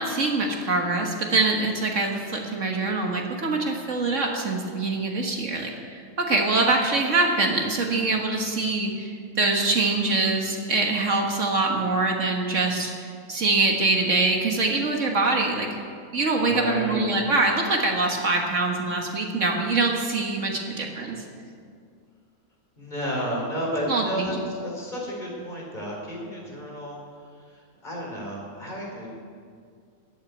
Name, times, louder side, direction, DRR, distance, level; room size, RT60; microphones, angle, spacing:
voice 1, 0.0-15.8 16.1-21.2 23.9-24.4, right 3 dB, 60° right, 1 dB, 1.8 m, -24 dB
voice 2, 16.5-17.0 22.8-27.0 27.4-29.1, equal, 35° left, -3 dB, 4.1 m, -32 dB
14.0 x 8.4 x 9.5 m, 2.2 s
omnidirectional pair, 1.4 m